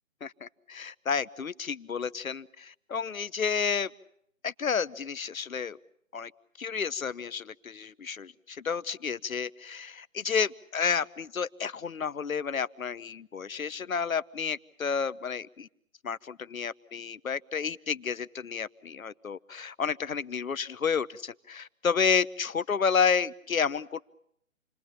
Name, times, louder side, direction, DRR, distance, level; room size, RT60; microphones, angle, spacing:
voice 1, 0.2-3.9 4.4-5.8 6.1-6.3 6.6-15.7 16.0-24.0, left 6 dB, 80° left, 18 dB, 1.0 m, -31 dB
29.0 x 21.5 x 7.2 m, 0.72 s
figure-of-eight pair, 155°, 41 cm